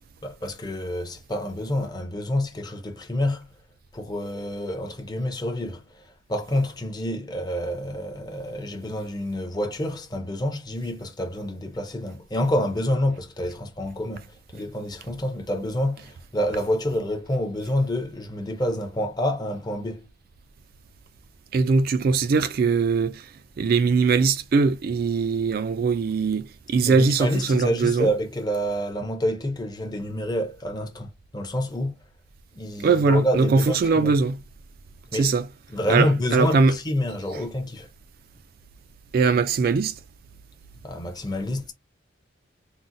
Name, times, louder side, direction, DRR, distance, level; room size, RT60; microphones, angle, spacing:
voice 1, 0.2-3.5 3.9-20.1 26.8-32.0 32.5-34.1 35.1-35.3 35.7-37.9 40.8-41.7, left 1 dB, 20° left, 0.6 m, -28 dB
voice 2, 21.5-23.3 23.6-28.1 32.8-34.4 35.1-35.5 35.9-36.8 39.1-40.0, right 4 dB, 50° right, 0.3 m, -21 dB
3.8 x 2.1 x 2.6 m
head